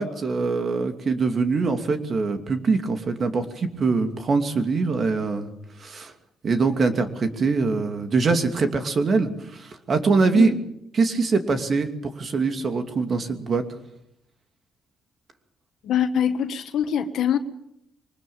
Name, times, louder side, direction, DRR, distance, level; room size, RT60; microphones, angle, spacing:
voice 1, 0.0-5.5 5.8-6.1 6.4-10.5 11.0-11.9 12.2-13.6, right 4 dB, 45° right, 7 dB, 2.6 m, -23 dB
voice 2, 10.3-10.7 15.8-17.4, left 9 dB, 75° left, 8 dB, 1.5 m, -24 dB
23.0 x 19.5 x 7.2 m, 0.76 s
cardioid pair, 90°, 0 cm